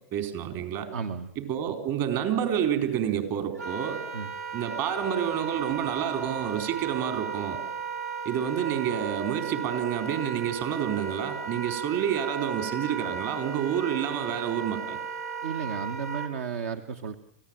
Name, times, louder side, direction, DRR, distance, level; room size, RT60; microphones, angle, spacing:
voice 1, 0.1-0.9 1.4-4.0 4.5-7.6 8.2-15.0, right 9 dB, 50° right, 8 dB, 4.4 m, -29 dB
voice 2, 0.9-1.3 4.1-4.3 15.4-17.2, right 6 dB, 70° right, 9 dB, 1.2 m, -33 dB
Wind instrument woodwind instrument, 3.6-16.3, right 5 dB, 90° right, 3.5 m, -35 dB
27.0 x 16.0 x 9.1 m, 0.79 s
hypercardioid pair, 110°, 8 cm